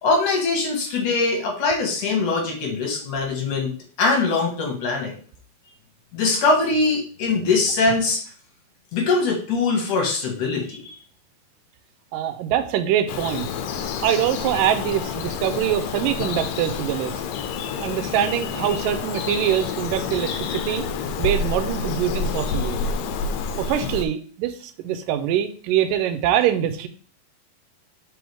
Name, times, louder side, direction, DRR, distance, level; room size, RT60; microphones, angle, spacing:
voice 1, 0.0-3.7 4.0-5.1 6.1-8.2 8.9-10.9, left 3 dB, 70° left, 0 dB, 3.2 m, -22 dB
voice 2, 12.1-13.5 14.0-17.2 17.8-20.8 21.2-22.8 23.6-26.9, right 10 dB, 90° right, 10 dB, 2.3 m, -24 dB
Bird vocalization bird call bird song, 13.1-24.1, left 5 dB, 85° left, 2.3 m, -28 dB
6.1 x 4.6 x 3.5 m, 0.43 s
omnidirectional pair, 3.8 m